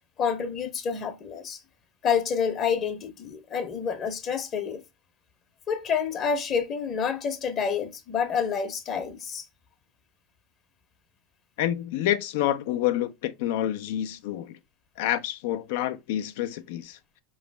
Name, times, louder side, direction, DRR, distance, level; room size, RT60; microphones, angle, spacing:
voice 1, 0.2-1.6 2.0-4.8 5.7-9.4, left 6 dB, 40° left, 0.9 m, -28 dB
voice 2, 11.6-14.6 15.0-17.0, left 12 dB, 70° left, 0.6 m, -28 dB
5.0 x 3.2 x 3.2 m
hypercardioid pair, 105°, 0 cm